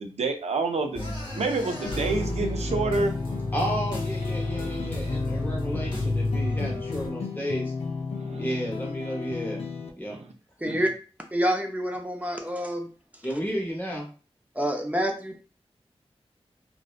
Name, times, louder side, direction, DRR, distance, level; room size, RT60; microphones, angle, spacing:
voice 1, 0.0-3.2 8.1-8.7 10.1-10.3 10.7-10.8, right 3 dB, 85° right, 4 dB, 0.4 m, -29 dB
sound 1, 0.9-7.1, left 1 dB, 50° left, 1.1 m, -31 dB
sound 2, 1.8-9.9, left 4 dB, 80° left, 0.4 m, -33 dB
voice 2, 3.5-7.7 8.4-9.6 10.0-10.2 13.2-14.1, equal, 20° left, -2 dB, 0.9 m, -32 dB
voice 3, 10.6-10.9 11.3-12.9 14.6-15.4, equal, 15° right, 3 dB, 0.5 m, -27 dB
2.6 x 2.0 x 2.4 m, 0.36 s
wide cardioid pair, 50°, 11 cm